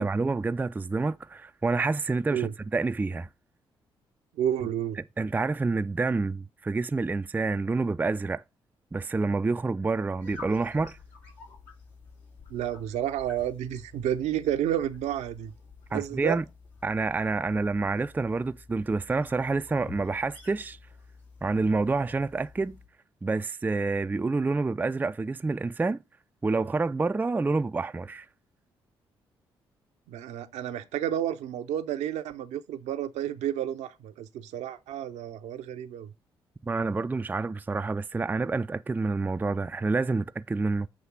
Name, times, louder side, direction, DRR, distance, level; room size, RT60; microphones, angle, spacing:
voice 1, 0.0-3.3 5.2-8.4 8.9-11.0 15.9-16.4 16.8-20.8 21.4-22.8 23.2-26.0 26.4-28.3 36.6-40.9, right 3 dB, 15° right, 0.3 m, -28 dB
voice 2, 4.4-5.0 12.5-15.5 15.9-16.4 30.1-36.1, right 11 dB, 65° right, 0.6 m, -31 dB
sound 1, 10.2-22.9, left 4 dB, 75° left, 1.9 m, -50 dB
7.4 x 3.1 x 5.9 m
hypercardioid pair, 40°, 12 cm